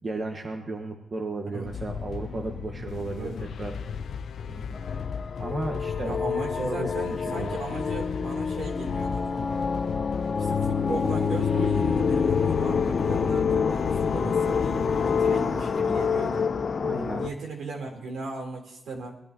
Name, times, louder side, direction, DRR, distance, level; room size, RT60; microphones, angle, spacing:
voice 1, 0.0-3.3 3.6-3.7 5.4-6.2 6.6-7.5 16.8-17.2, right 2 dB, 35° right, 2 dB, 1.7 m, -34 dB
sound 1, 1.6-15.4, left 6 dB, 75° left, 0.5 m, -36 dB
voice 2, 4.5-4.8 6.0-9.6 10.3-16.5 17.2-19.1, right 3 dB, 80° right, 1 dB, 3.8 m, -37 dB
sound 2, 4.7-17.3, left 6 dB, 45° left, 0.8 m, -27 dB
21.0 x 12.0 x 3.0 m, 0.85 s
wide cardioid pair, 135°, 0 cm